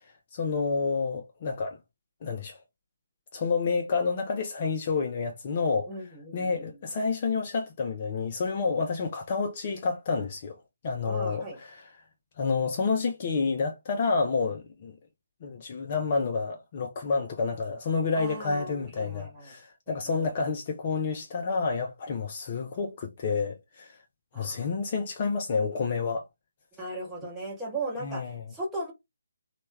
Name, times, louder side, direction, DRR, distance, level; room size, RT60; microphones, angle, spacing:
voice 1, 0.3-1.8 2.2-2.6 3.3-5.9 6.3-10.6 10.8-11.9 12.4-15.0 15.4-24.0 24.3-26.2 28.0-28.4, left 4 dB, 30° left, 0.4 m, -29 dB
voice 2, 5.9-6.6 11.0-11.6 18.1-19.5 20.1-20.3 24.3-24.7 26.8-28.9, right 2 dB, 5° right, 0.9 m, -37 dB
3.0 x 2.1 x 3.1 m
figure-of-eight pair, 145°, 0 cm